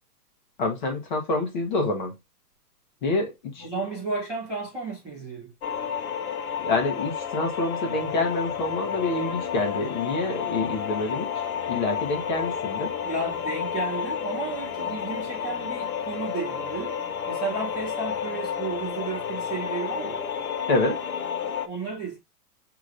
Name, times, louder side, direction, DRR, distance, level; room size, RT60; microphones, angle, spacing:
voice 1, 0.6-2.1 3.0-3.7 6.6-11.3 11.7-12.9 20.7-21.0, left 2 dB, 30° left, 1.0 m, -27 dB
voice 2, 3.6-5.5 13.0-17.0 17.3-20.2 21.7-22.2, right 4 dB, ahead, 0.7 m, -33 dB
sound 1, 5.6-21.7, left 7 dB, 60° left, 0.8 m, -31 dB
6.3 x 3.0 x 2.4 m
hypercardioid pair, 170°, 49 cm